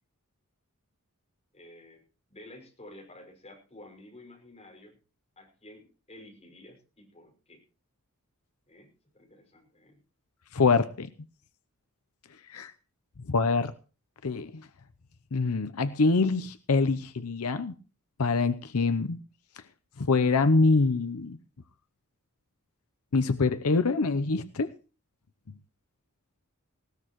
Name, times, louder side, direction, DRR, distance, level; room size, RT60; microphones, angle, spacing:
voice 1, 1.5-2.0 2.3-5.0 5.4-7.6 8.7-10.0, left 1 dB, 30° left, 0 dB, 5.7 m, -51 dB
voice 2, 10.5-11.1 12.5-12.7 13.3-13.7 14.2-14.5 15.3-17.7 18.2-19.2 20.0-21.4 23.1-24.7, left 3 dB, 75° left, 11 dB, 0.7 m, -25 dB
20.0 x 17.5 x 3.1 m, 0.35 s
head